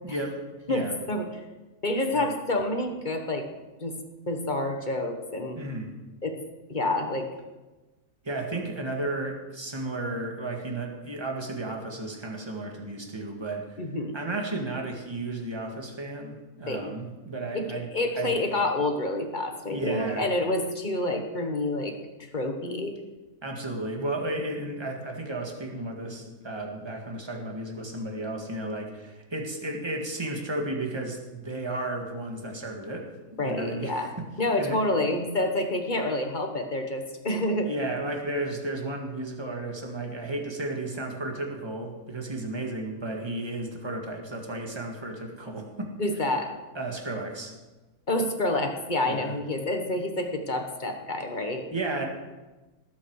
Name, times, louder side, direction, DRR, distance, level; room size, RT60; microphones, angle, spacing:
voice 1, 0.0-0.4 0.7-0.9 2.1-2.3 5.5-5.9 8.2-13.8 14.1-17.9 18.2-18.4 19.7-20.2 23.4-34.3 34.6-34.8 37.7-45.9 46.7-47.6 49.0-49.3 51.7-52.1, right 2 dB, 20° right, 1 dB, 1.8 m, -33 dB
voice 2, 0.7-1.4 1.8-3.5 3.8-3.9 4.3-5.6 6.2-6.3 6.7-7.3 13.8-14.1 16.7-16.9 17.5-22.9 33.4-34.1 34.4-37.7 46.0-46.5 48.1-51.6, left 1 dB, 35° left, 4 dB, 1.4 m, -28 dB
19.0 x 8.3 x 4.8 m, 1.2 s
omnidirectional pair, 1.5 m